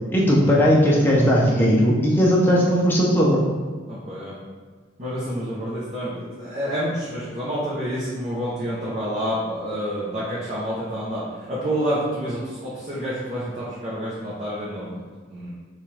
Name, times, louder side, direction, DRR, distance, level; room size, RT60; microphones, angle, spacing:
voice 1, 0.1-3.4, equal, 10° left, -5 dB, 0.7 m, -17 dB
voice 2, 3.9-4.3 5.0-15.0 15.3-15.5, equal, 30° right, -9 dB, 0.8 m, -28 dB
5.8 x 2.5 x 3.3 m, 1.5 s
head